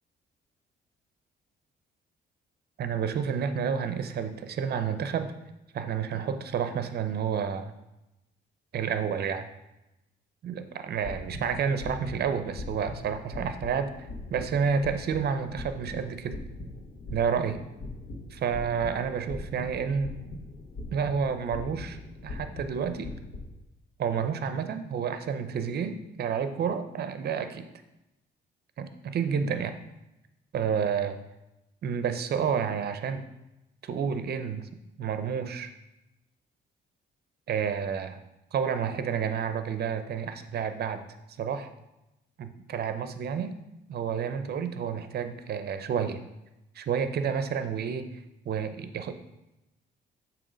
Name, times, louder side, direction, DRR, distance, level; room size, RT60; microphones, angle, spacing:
voice 1, 2.8-5.3 5.7-7.7 8.7-9.5 10.4-16.4 17.1-17.6 18.3-20.1 20.9-22.0 22.2-23.1 24.0-27.6 28.8-29.8 30.5-31.2 31.8-33.3 33.8-34.7 35.0-35.7 37.5-38.2 38.5-41.0 41.4-41.7 42.4-43.5 43.9-46.2 46.8-48.1 48.5-49.1, right 7 dB, 55° right, 10 dB, 0.6 m, -30 dB
sound 1, 10.9-23.5, left 2 dB, 80° left, 1.3 m, -41 dB
7.1 x 3.0 x 5.1 m, 0.93 s
cardioid pair, 90°, 20 cm